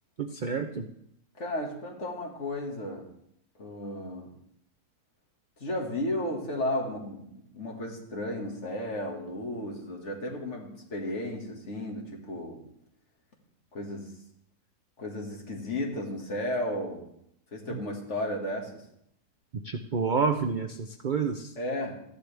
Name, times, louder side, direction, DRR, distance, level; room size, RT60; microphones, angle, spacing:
voice 1, 0.2-0.9 17.7-17.8 19.6-21.5, right 5 dB, 65° right, 6 dB, 0.4 m, -29 dB
voice 2, 1.4-3.1 3.6-4.3 5.6-12.6 13.7-14.1 15.0-17.1 17.5-18.8 21.6-22.0, left 1 dB, 45° left, 0 dB, 2.1 m, -34 dB
14.5 x 11.0 x 3.4 m, 0.74 s
omnidirectional pair, 1.7 m